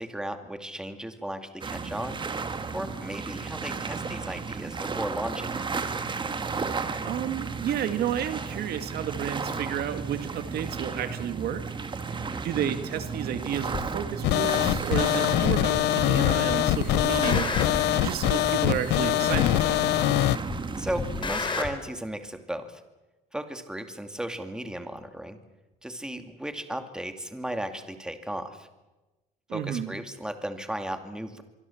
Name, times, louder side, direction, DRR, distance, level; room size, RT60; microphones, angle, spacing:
voice 1, 0.0-2.2 2.7-5.7 12.1-12.5 20.7-22.8 23.3-25.4 25.8-28.7 29.5-31.4, right 1 dB, 5° right, 7 dB, 2.3 m, -35 dB
sound 1, 1.6-21.3, right 5 dB, 30° right, 2.0 m, -34 dB
voice 2, 7.1-11.6 12.4-19.8 29.5-29.9, right 9 dB, 65° right, 9 dB, 2.0 m, -31 dB
sound 2, 13.7-13.9 14.7-14.8 15.7-16.2 16.5-18.0 18.7-18.8 19.7-20.2 20.5-21.7, left 4 dB, 30° left, 4.2 m, -32 dB
sound 3, 14.2-20.4, left 16 dB, 80° left, 0.7 m, -24 dB
25.0 x 23.5 x 7.2 m, 1.1 s
cardioid pair, 110°, 17 cm